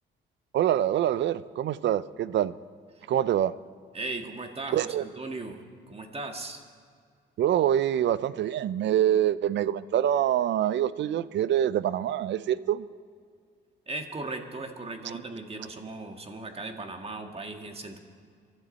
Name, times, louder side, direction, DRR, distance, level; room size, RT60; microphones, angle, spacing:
voice 1, 0.5-2.5 3.1-3.5 4.7-5.0 7.4-12.9, right 11 dB, 65° right, 17 dB, 0.5 m, -25 dB
voice 2, 3.9-6.6 13.9-18.0, right 2 dB, 30° right, 4 dB, 1.8 m, -37 dB
23.5 x 12.0 x 4.2 m, 2.1 s
cardioid pair, 90°, 20 cm